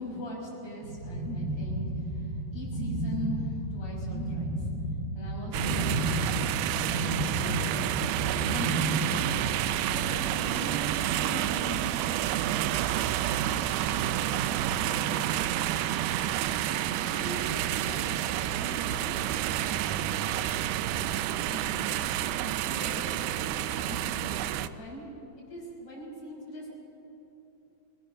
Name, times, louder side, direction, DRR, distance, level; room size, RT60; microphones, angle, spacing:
voice 1, 0.0-4.6 5.1-6.4 6.8-7.9 8.4-9.3 9.8-21.9 22.4-25.1 25.4-26.7, left 1 dB, 40° left, -4 dB, 6.8 m, -42 dB
sound 1, 0.8-9.4, right 1 dB, 50° right, 8.4 m, -32 dB
sound 2, 5.5-24.7, right 12 dB, 80° right, 2.0 m, -29 dB
23.0 x 20.0 x 6.7 m, 2.9 s
omnidirectional pair, 3.9 m